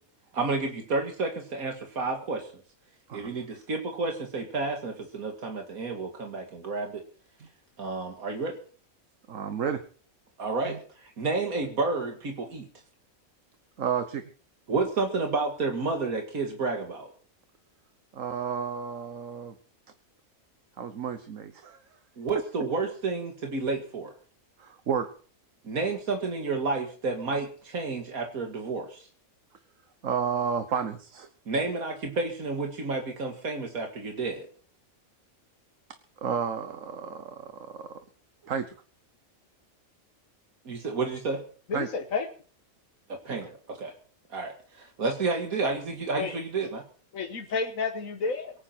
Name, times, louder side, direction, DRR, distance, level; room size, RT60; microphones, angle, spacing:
voice 1, 0.3-2.5 3.1-7.0 7.8-8.6 10.4-12.6 14.7-17.1 22.2-24.1 25.6-29.1 31.5-34.5 40.7-41.4 43.1-43.9 44.3-46.8, right 3 dB, 85° right, 2 dB, 2.4 m, -30 dB
voice 2, 9.3-9.8 10.7-10.8 13.8-14.2 18.1-19.5 20.8-21.8 24.6-25.1 30.0-31.3 36.2-38.0 38.4-38.7 41.7-41.9 43.3-43.5, right 7 dB, 65° right, 9 dB, 1.5 m, -31 dB
voice 3, 41.7-42.3 46.2-46.4 47.1-48.5, left 4 dB, 70° left, 3 dB, 1.8 m, -30 dB
23.0 x 9.7 x 4.5 m, 0.43 s
omnidirectional pair, 1.5 m